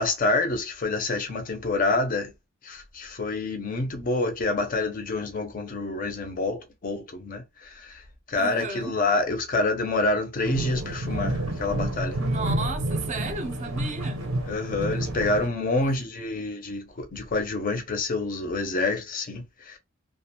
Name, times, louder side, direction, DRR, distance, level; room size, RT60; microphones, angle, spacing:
voice 1, 0.0-2.3 2.6-12.2 14.4-19.8, left 2 dB, 40° left, 0.5 m, -27 dB
voice 2, 8.4-8.9 12.2-14.3 15.8-16.1, right 3 dB, 35° right, 0.5 m, -34 dB
sound 1, 10.4-15.5, right 1 dB, 90° right, 0.6 m, -29 dB
2.3 x 2.1 x 2.7 m
head